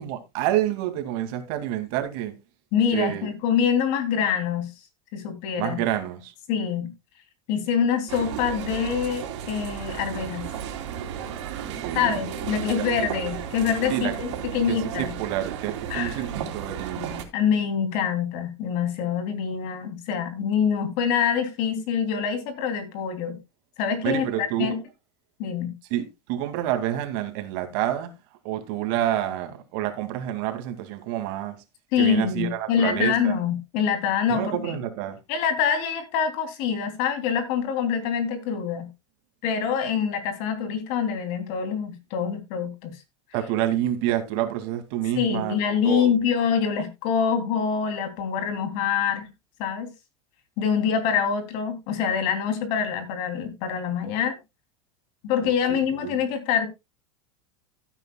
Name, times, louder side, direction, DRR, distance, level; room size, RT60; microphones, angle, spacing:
voice 1, 0.0-2.3 2.9-3.3 5.6-6.3 11.7-12.2 12.5-13.1 13.9-14.1 14.7-17.0 24.0-24.7 25.9-28.1 28.4-31.6 32.0-33.4 34.3-35.2 43.3-45.6 45.8-46.1 55.4-56.2, right 12 dB, 55° right, 2.4 m, -28 dB
voice 2, 2.7-4.7 5.1-5.8 6.5-6.9 7.5-10.5 11.9-15.1 15.9-16.3 17.0-17.1 17.3-23.4 23.8-24.7 25.4-25.7 31.9-34.7 35.3-38.9 39.4-42.9 45.2-49.3 49.6-49.9 50.6-54.4 55.2-56.7, left 7 dB, 55° left, 3.1 m, -25 dB
sound 1, 8.1-17.2, right 9 dB, 80° right, 3.6 m, -34 dB
16.0 x 9.0 x 2.3 m
supercardioid pair, 150°, 15 cm